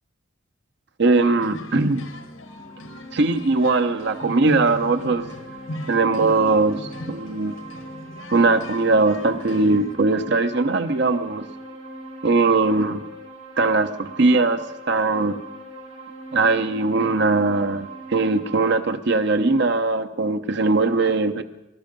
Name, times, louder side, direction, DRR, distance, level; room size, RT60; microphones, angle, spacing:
voice 1, 1.0-2.0 3.1-5.3 5.9-7.5 8.3-11.5 12.2-13.0 13.6-14.6 14.9-15.4 16.3-21.4, right 3 dB, 55° right, 9 dB, 1.0 m, -20 dB
sound 1, 1.4-10.0, left 1 dB, 85° left, 1.6 m, -37 dB
sound 2, 2.4-18.7, right 2 dB, 90° right, 5.8 m, -41 dB
19.5 x 13.0 x 5.4 m, 0.94 s
head